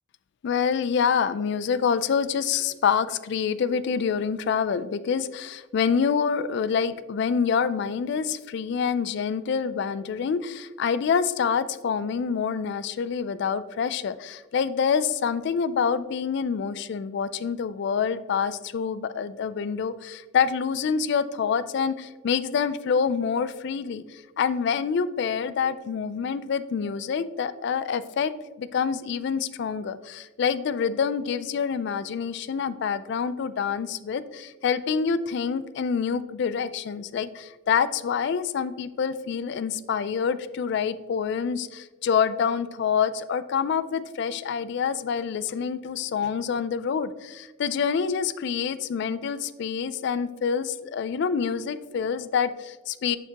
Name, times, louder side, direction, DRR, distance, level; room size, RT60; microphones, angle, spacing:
voice 1, 0.4-28.3 28.6-53.2, left 6 dB, 60° left, 15 dB, 0.3 m, -26 dB
7.1 x 5.8 x 2.9 m, 1.2 s
head